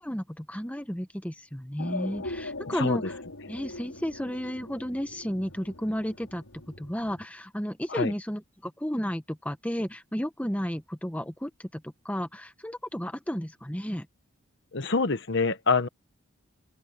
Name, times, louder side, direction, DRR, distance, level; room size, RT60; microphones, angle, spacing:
voice 1, 0.0-3.2 3.5-6.4 6.8-14.1, equal, 5° left, 1.4 m, -33 dB
sound 1, 1.8-7.3, left 2 dB, 85° left, 4.8 m, -41 dB
voice 2, 14.7-15.9, left 4 dB, 55° left, 1.1 m, -25 dB
open air
head